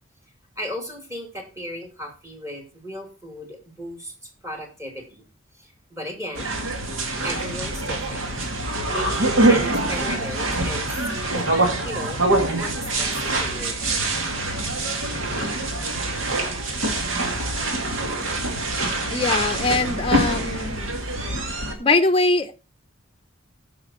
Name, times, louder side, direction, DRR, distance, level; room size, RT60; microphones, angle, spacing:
voice 1, 0.6-4.1 4.4-5.2 5.6-6.5 7.2-8.5 8.9-11.5 11.8-12.2 12.6-13.8, equal, 15° right, 2 dB, 2.7 m, -35 dB
sound 1, 6.4-21.7, right 2 dB, 70° right, 2.2 m, -24 dB
voice 2, 19.1-20.8 21.8-22.5, left 3 dB, 25° left, 8 dB, 0.7 m, -21 dB
15.0 x 5.9 x 4.3 m, 0.33 s
head